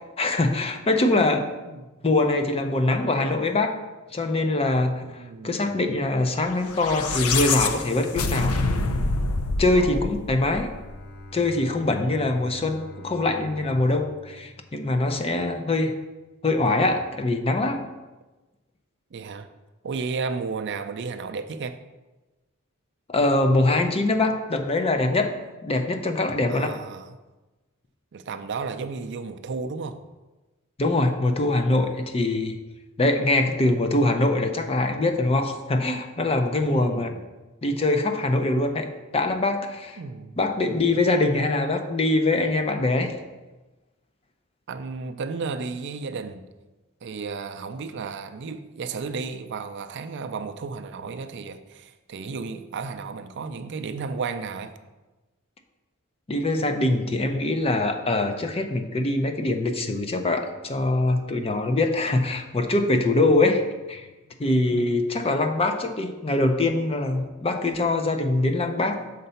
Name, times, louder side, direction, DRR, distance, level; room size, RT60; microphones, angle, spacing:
voice 1, 0.2-1.5 2.0-3.7 4.1-8.6 9.6-10.7 11.3-15.9 16.4-17.8 23.1-25.3 25.6-26.7 30.8-32.6 33.0-37.1 37.6-38.9 39.1-40.0 40.4-43.2 56.3-63.6 63.9-64.1 64.4-69.0, left 2 dB, 25° left, 6 dB, 0.5 m, -23 dB
voice 2, 1.7-2.1 5.0-6.0 9.7-10.1 19.1-19.5 19.8-21.8 26.5-27.2 28.1-30.0 36.7-37.2 40.0-40.4 40.9-41.0 44.7-46.4 47.0-54.7 63.3-63.5 64.7-64.9, right 4 dB, 55° right, 9 dB, 0.4 m, -33 dB
sound 1, 6.6-11.0, left 3 dB, 85° left, 0.5 m, -26 dB
Bowed string instrument, 10.4-15.4, left 1 dB, 50° left, 0.8 m, -45 dB
6.6 x 4.0 x 5.6 m, 1.1 s
head